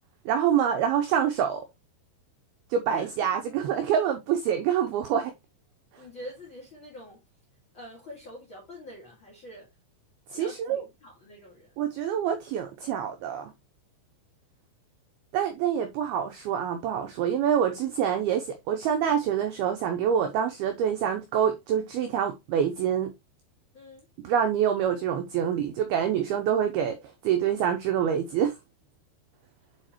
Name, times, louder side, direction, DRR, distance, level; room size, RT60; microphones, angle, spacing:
voice 1, 0.3-1.7 2.7-5.3 10.3-10.8 11.8-13.5 15.3-23.1 24.2-27.0 27.2-28.5, right 8 dB, 85° right, 2.2 m, -26 dB
voice 2, 2.9-3.4 6.0-7.2 7.7-9.7 10.3-11.7 23.7-24.1, left 1 dB, 45° left, 1.7 m, -45 dB
8.8 x 4.2 x 3.0 m
omnidirectional pair, 5.5 m